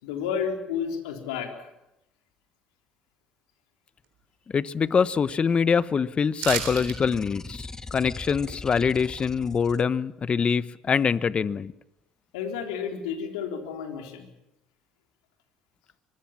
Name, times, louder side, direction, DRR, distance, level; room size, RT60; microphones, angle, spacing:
voice 1, 0.0-1.7 12.3-14.3, left 7 dB, 90° left, 4 dB, 3.8 m, -31 dB
voice 2, 4.5-11.7, left 6 dB, 40° left, 17 dB, 1.1 m, -24 dB
sound 1, 6.4-7.0 7.3-7.4, right 11 dB, 85° right, 3.9 m, -31 dB
sound 2, 6.5-9.8, left 3 dB, 20° left, 1.5 m, -40 dB
24.5 x 21.0 x 7.3 m, 0.88 s
supercardioid pair, 70°, 3 cm